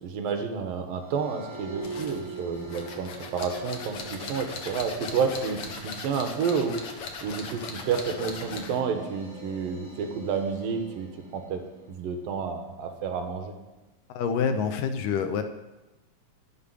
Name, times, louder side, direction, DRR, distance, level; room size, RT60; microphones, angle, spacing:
voice 1, 0.0-6.8 7.2-11.6 11.9-13.5, right 6 dB, 80° right, 5 dB, 3.0 m, -30 dB
sound 1, 0.9-12.3, right 1 dB, 40° left, 4.2 m, -44 dB
sound 2, 1.8-8.8, left 4 dB, 55° left, 1.9 m, -39 dB
voice 2, 14.1-15.4, left 6 dB, 80° left, 8 dB, 2.4 m, -27 dB
12.0 x 7.1 x 9.9 m, 1.1 s
omnidirectional pair, 4.0 m